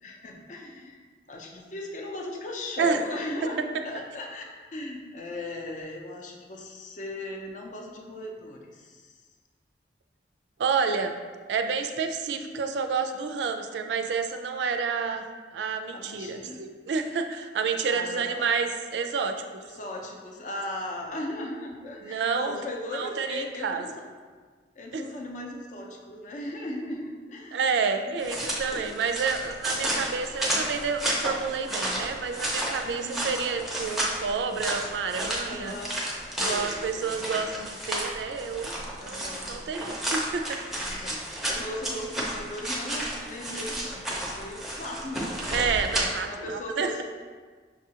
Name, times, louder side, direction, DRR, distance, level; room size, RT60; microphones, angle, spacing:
voice 1, 0.0-4.4 4.7-9.2 12.3-12.7 15.9-16.6 17.9-18.5 19.6-24.1 24.7-28.4 28.7-28.9 32.8-33.2 35.4-37.4 39.0-39.5 40.8-45.6 46.2-47.0, left 1 dB, 45° left, 1 dB, 0.5 m, -38 dB
voice 2, 10.6-11.1 11.5-15.2 15.5-19.4 22.0-22.6 22.9-23.9 24.9-25.0 27.5-35.8 36.4-38.7 39.0-40.6 45.5-47.0, right 5 dB, 80° right, 6 dB, 0.3 m, -29 dB
sound 1, 28.2-46.1, right 1 dB, ahead, 0.5 m, -32 dB
6.1 x 2.4 x 2.8 m, 1.5 s
head